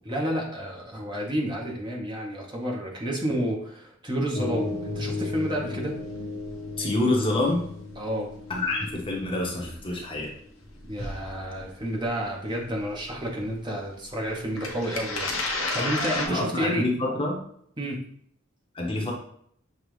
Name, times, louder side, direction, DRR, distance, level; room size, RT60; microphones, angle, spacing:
voice 1, 0.1-6.0 8.0-8.3 10.8-16.9 17.8-18.0, equal, 25° right, -1 dB, 0.8 m, -30 dB
sound 1, 4.3-10.3 10.6-11.4 13.1-13.2 13.4-13.5 14.6-16.3, left 2 dB, 85° left, 0.9 m, -33 dB
voice 2, 6.8-7.6 8.5-10.3 16.3-17.4 18.7-19.1, left 2 dB, 25° left, -1 dB, 0.9 m, -27 dB
6.8 x 2.4 x 3.1 m, 0.64 s
head